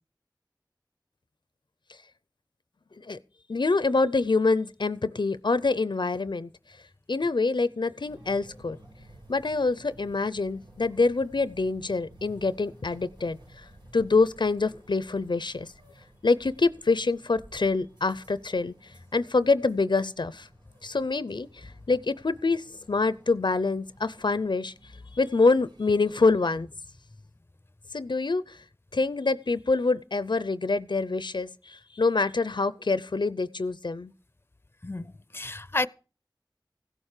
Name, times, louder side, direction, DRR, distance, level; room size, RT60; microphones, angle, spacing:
voice 1, 3.5-6.5 7.1-8.8 9.3-13.7 13.9-15.7 16.2-18.7 19.1-20.5 20.8-24.7 25.1-26.7 27.9-28.6 28.9-34.1, left 3 dB, 80° left, 0.6 m, -26 dB
sound 1, 8.0-26.2, right 1 dB, 90° right, 5.1 m, -54 dB
voice 2, 34.8-35.9, left 2 dB, 30° left, 0.6 m, -31 dB
16.0 x 7.3 x 6.7 m
wide cardioid pair, 40°, 8 cm